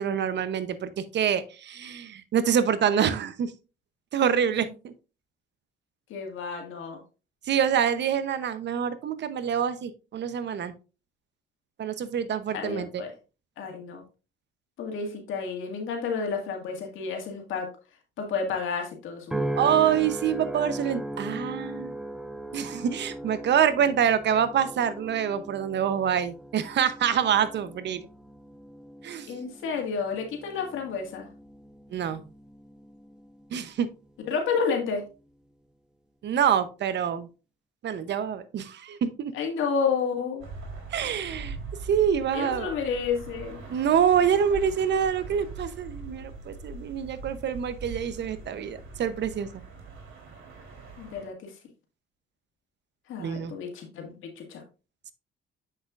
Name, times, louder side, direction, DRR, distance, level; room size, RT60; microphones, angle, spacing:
voice 1, 0.0-3.5 4.1-4.9 7.5-10.7 11.8-13.0 19.6-22.0 22.5-28.0 29.0-29.3 31.9-32.2 33.5-33.9 36.2-37.3 37.8-39.3 40.9-41.6 41.8-42.7 43.7-49.6 53.2-53.5, right 8 dB, 60° right, 13 dB, 0.8 m, -26 dB
voice 2, 6.1-7.0 12.5-13.1 13.6-14.0 14.8-17.7 18.2-19.9 29.3-31.3 34.3-35.0 39.3-40.5 42.3-43.6 51.0-51.5 53.1-54.6, left 5 dB, 85° left, 3 dB, 1.9 m, -31 dB
sound 1, 19.3-33.8 34.3-34.7, right 1 dB, 5° right, 0.5 m, -38 dB
sound 2, 40.4-51.3, right 3 dB, 85° right, 3.2 m, -42 dB
7.6 x 6.5 x 2.5 m, 0.32 s
cardioid pair, 90°, 20 cm